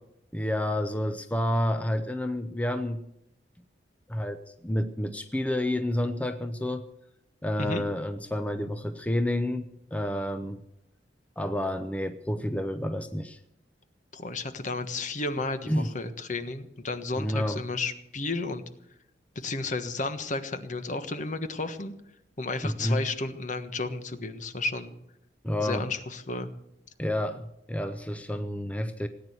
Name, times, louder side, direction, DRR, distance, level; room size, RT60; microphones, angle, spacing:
voice 1, 0.3-3.0 4.1-6.8 7.4-10.6 11.4-13.4 15.7-15.9 17.2-17.6 22.6-23.0 25.4-25.9 27.0-29.1, left 1 dB, 10° left, 9 dB, 0.7 m, -29 dB
voice 2, 14.1-18.6 19.3-21.9 22.4-24.9 25.6-26.5, left 3 dB, 45° left, 10 dB, 1.4 m, -32 dB
18.0 x 9.3 x 8.0 m, 0.81 s
head